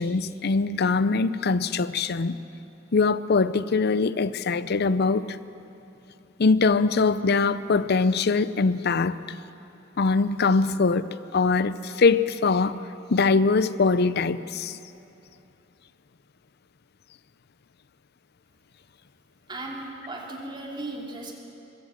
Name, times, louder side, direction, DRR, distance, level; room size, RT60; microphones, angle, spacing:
voice 1, 0.0-2.4 2.9-5.3 6.4-9.2 10.0-11.1 11.3-12.8 13.1-14.8, left 4 dB, 55° left, 0.6 m, -22 dB
voice 2, 19.5-21.3, right 2 dB, 25° right, 2.6 m, -36 dB
21.5 x 16.5 x 7.5 m
head